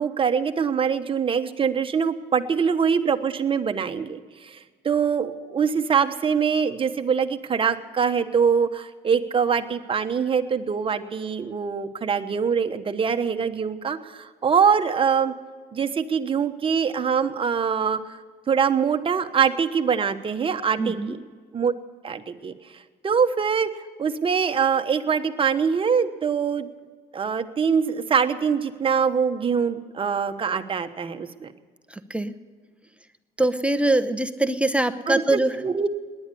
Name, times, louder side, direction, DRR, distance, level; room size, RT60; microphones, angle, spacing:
voice 1, 0.0-15.3 15.7-18.2 18.5-21.2 21.5-21.7 22.0-22.5 23.0-23.7 24.0-26.7 27.1-31.5 35.1-35.9, right 6 dB, 30° right, 8 dB, 1.1 m, -23 dB
voice 2, 20.8-21.1 32.1-32.3 33.4-35.5, right 2 dB, 5° right, 10 dB, 0.8 m, -23 dB
18.5 x 11.0 x 6.9 m, 1.5 s
cardioid pair, 110°, 17 cm